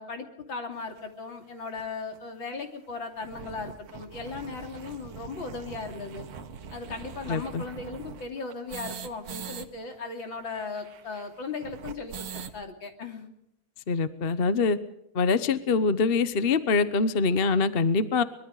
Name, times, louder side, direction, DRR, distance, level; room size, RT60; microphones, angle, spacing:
voice 1, 0.0-6.3 6.7-13.3, left 4 dB, 60° left, 5 dB, 3.6 m, -37 dB
sound 1, 1.0-1.1 1.8-1.9 2.1-2.2 2.5-2.6 3.0-9.7 9.9-10.0 10.2-12.6, right 6 dB, 80° right, 2.3 m, -42 dB
voice 2, 7.3-7.6 13.9-14.8 15.1-18.2, left 4 dB, 40° left, 13 dB, 0.9 m, -24 dB
24.0 x 22.5 x 4.9 m, 0.80 s
omnidirectional pair, 2.4 m